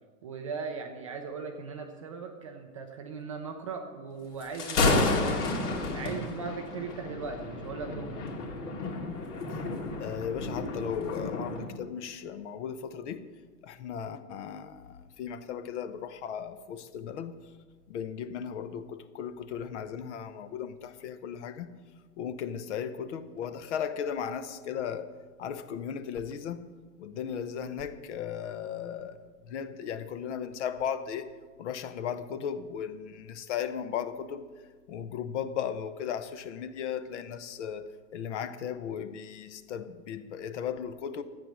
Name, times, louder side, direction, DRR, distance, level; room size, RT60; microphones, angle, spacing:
voice 1, 0.2-5.2 5.9-8.2, right 5 dB, 25° right, 3 dB, 0.4 m, -38 dB
Thunder, 4.4-11.6, left 2 dB, 70° left, 3.0 m, -31 dB
voice 2, 8.8-9.3 10.0-13.3 13.6-17.4 17.9-21.7 22.2-25.1 25.4-26.6 27.0-31.3 31.6-34.4 34.9-41.2, left 8 dB, 45° left, 12 dB, 0.9 m, -36 dB
13.0 x 9.0 x 6.3 m, 1.5 s
supercardioid pair, 160°, 47 cm